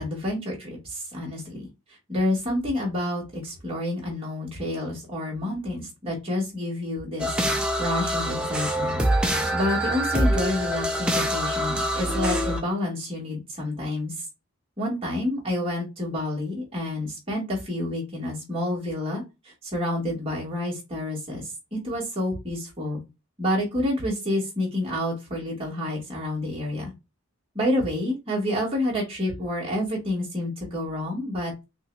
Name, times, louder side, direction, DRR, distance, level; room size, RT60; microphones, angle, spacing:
voice 1, 0.0-1.7 2.1-14.1 14.8-19.2 19.6-23.0 23.4-26.9 27.5-31.5, left 1 dB, 25° right, -4 dB, 2.4 m, -29 dB
sound 1, 7.2-12.6, equal, 5° right, 0.6 m, -25 dB
6.0 x 2.9 x 2.7 m, 0.25 s
head